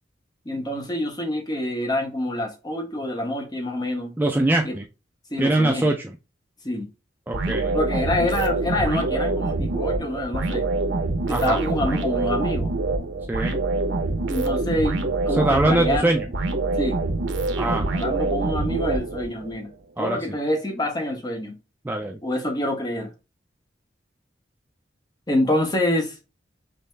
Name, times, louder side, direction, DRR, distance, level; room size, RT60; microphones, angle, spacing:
voice 1, 0.4-4.1 4.6-4.8 5.3-5.9 6.6-6.9 7.7-10.6 11.3-12.7 14.3-16.1 16.8-17.0 17.9-19.7 20.0-21.5 22.2-23.1 25.3-26.2, left 1 dB, 20° left, 0.8 m, -26 dB
voice 2, 4.2-4.8 5.4-6.0 7.3-7.7 11.3-11.6 13.3-13.5 15.3-16.3 17.6-17.9 20.0-20.4 21.8-22.2, right 2 dB, 10° right, 0.3 m, -22 dB
sound 1, 7.3-19.5, right 2 dB, 80° right, 0.8 m, -25 dB
5.4 x 2.0 x 3.2 m
head